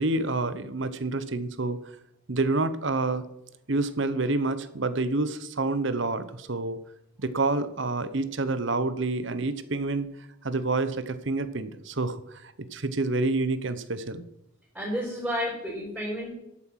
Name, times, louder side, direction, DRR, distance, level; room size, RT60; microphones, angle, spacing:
voice 1, 0.0-1.8 2.3-3.2 3.7-6.8 7.2-10.1 10.4-14.2, right 2 dB, 60° right, 13 dB, 0.9 m, -28 dB
voice 2, 14.7-16.3, equal, 5° right, -8 dB, 5.2 m, -31 dB
12.0 x 8.5 x 5.8 m, 0.81 s
head